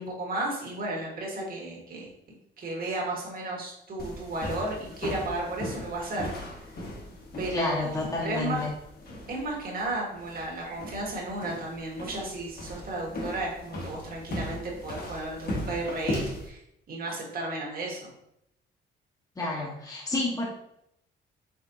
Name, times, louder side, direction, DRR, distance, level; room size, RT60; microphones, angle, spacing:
voice 1, 0.0-2.1 2.6-6.3 6.6-6.7 7.4-8.6 9.3-16.6 16.9-18.1, right 2 dB, 50° right, -2 dB, 1.5 m, -34 dB
sound 1, 4.0-16.5, left 1 dB, 50° left, 1.3 m, -38 dB
voice 2, 7.5-8.7 19.4-20.5, left 2 dB, 20° left, -3 dB, 1.1 m, -29 dB
5.1 x 3.5 x 2.7 m, 0.77 s
cardioid pair, 90°, 20 cm